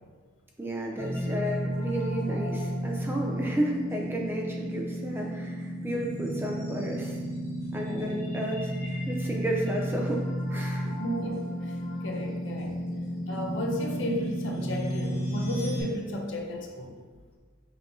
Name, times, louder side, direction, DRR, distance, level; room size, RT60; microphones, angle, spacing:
voice 1, 0.6-7.2 7.7-10.2 10.5-10.9, right 1 dB, 10° right, 0 dB, 0.3 m, -32 dB
sound 1, 1.0-15.8, equal, 15° left, 0.9 m, -32 dB
voice 2, 10.9-12.8 13.3-17.0, equal, 60° left, 1 dB, 0.6 m, -34 dB
5.7 x 2.8 x 2.7 m, 1.5 s
head